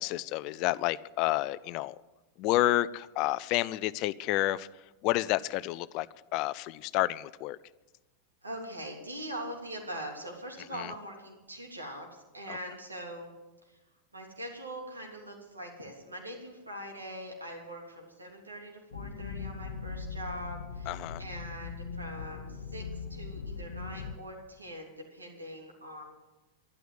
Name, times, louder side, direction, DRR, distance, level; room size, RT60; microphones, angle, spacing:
voice 1, 0.0-2.0 2.4-4.7 5.0-6.1 6.3-7.6 10.7-10.9 12.5-12.6 20.9-21.2, left 17 dB, 40° left, 18 dB, 0.5 m, -30 dB
voice 2, 8.4-13.3 13.7-13.8 14.1-26.0, right 1 dB, 80° right, 1 dB, 3.2 m, -42 dB
sound 1, 18.9-24.1, left 5 dB, 65° left, 1.0 m, -40 dB
12.5 x 11.5 x 8.0 m, 1.1 s
figure-of-eight pair, 90°, 0 cm